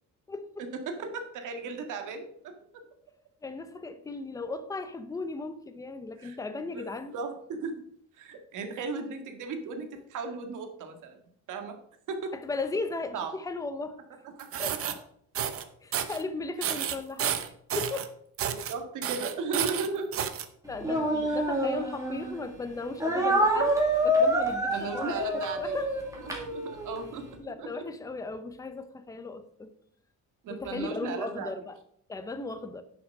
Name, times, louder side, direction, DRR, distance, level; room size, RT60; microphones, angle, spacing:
voice 1, 0.3-0.7 3.4-7.2 12.3-14.0 14.6-14.8 15.8-17.4 17.8-18.1 20.6-23.7 24.0-25.9 27.4-29.7 30.5-31.8 32.1-32.8, left 3 dB, 10° left, 0.7 m, -36 dB
voice 2, 0.9-2.5 6.2-6.4 6.8-7.8 8.2-11.2 11.5-11.8 12.1-12.3 13.1-13.3 14.4-14.9 18.5-20.2 21.3-21.4 24.7-25.8 26.2-27.7 30.4-31.5, right 4 dB, 75° right, 1.9 m, -36 dB
sound 1, 14.4-14.9 15.3-15.6 15.9-16.2 16.6-18.1 18.4-18.7 19.0-20.4, right 9 dB, 45° right, 0.8 m, -31 dB
Speech, 20.8-22.4 23.0-27.0, right 1 dB, 10° right, 2.1 m, -27 dB
10.0 x 6.1 x 5.4 m
cardioid pair, 175°, 31 cm